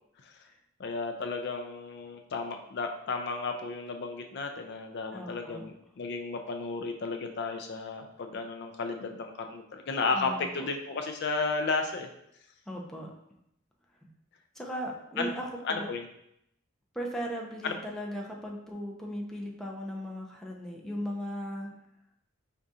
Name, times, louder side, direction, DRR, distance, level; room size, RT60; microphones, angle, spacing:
voice 1, 0.8-12.1 15.2-15.3 15.6-16.1 17.6-17.7, left 4 dB, 55° left, 5 dB, 0.4 m, -33 dB
voice 2, 5.1-5.6 10.1-10.7 12.7-13.1 14.5-15.9 16.9-21.7, equal, ahead, -1 dB, 0.6 m, -37 dB
4.9 x 3.5 x 2.7 m, 0.77 s
head